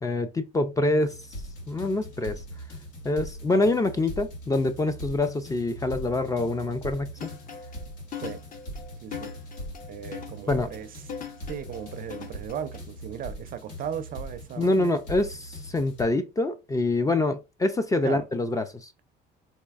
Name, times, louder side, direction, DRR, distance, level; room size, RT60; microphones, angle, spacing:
voice 1, 0.0-1.1 1.7-2.4 3.0-7.3 10.5-10.7 14.6-18.9, left 2 dB, 15° left, 0.4 m, -25 dB
sound 1, 1.0-16.0, equal, 90° left, 1.6 m, -41 dB
sound 2, 7.2-12.8, left 7 dB, 45° left, 0.8 m, -40 dB
voice 2, 9.0-9.3 9.9-11.0 11.5-14.9 18.0-18.2, right 8 dB, 45° right, 0.5 m, -37 dB
4.2 x 2.6 x 2.3 m
cardioid pair, 110°, 20 cm